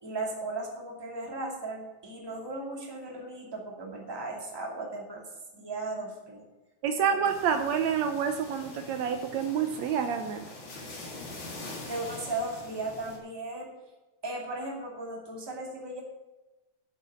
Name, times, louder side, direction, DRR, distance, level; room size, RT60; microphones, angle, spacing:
voice 1, 0.0-5.2 5.6-6.4 7.1-7.2 11.9-13.7 14.2-16.0, right 2 dB, 10° right, -1 dB, 1.9 m, -36 dB
voice 2, 6.8-10.5, right 7 dB, 75° right, 7 dB, 1.9 m, -28 dB
sound 1, 7.2-13.2, left 2 dB, 45° left, 2.7 m, -44 dB
8.0 x 7.6 x 8.5 m, 1.1 s
omnidirectional pair, 3.3 m